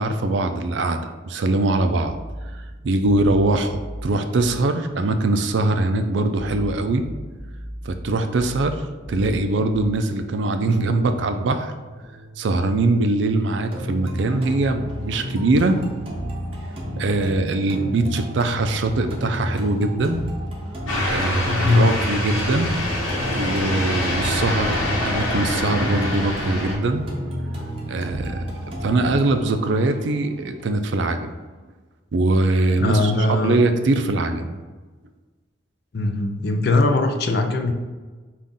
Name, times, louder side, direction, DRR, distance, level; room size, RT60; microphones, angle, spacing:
voice 1, 0.0-2.1 2.8-7.0 7.9-8.8 9.1-11.7 12.4-15.8 17.0-20.2 21.1-22.7 23.3-27.1 27.9-28.4 28.8-31.3 32.1-34.6, right 2 dB, 65° right, 7 dB, 0.4 m, -22 dB
sound 1, 2.0-4.6 6.3-10.0 11.0-12.7, equal, 20° left, 1.3 m, -37 dB
sound 2, 13.7-31.7, equal, 30° right, 0.7 m, -32 dB
sound 3, 20.9-26.8, left 1 dB, 85° left, 1.0 m, -25 dB
voice 2, 21.4-21.9 32.8-33.6 35.9-37.7, left 2 dB, 55° left, 6 dB, 0.4 m, -20 dB
5.4 x 2.5 x 3.6 m, 1.3 s
head